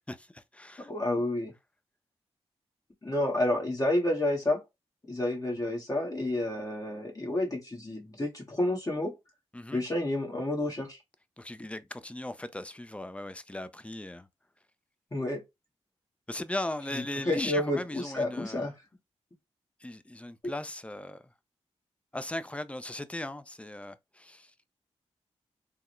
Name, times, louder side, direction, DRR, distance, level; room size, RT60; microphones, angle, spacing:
voice 1, 0.1-0.9 9.5-9.8 11.4-14.3 16.3-18.6 19.8-21.2 22.1-24.5, left 1 dB, 10° left, 0.5 m, -38 dB
voice 2, 0.8-1.5 3.0-4.6 5.1-9.1 9.7-11.0 15.1-15.4 16.9-18.7, left 1 dB, 30° left, 1.4 m, -30 dB
3.5 x 2.1 x 3.0 m
cardioid pair, 50°, 11 cm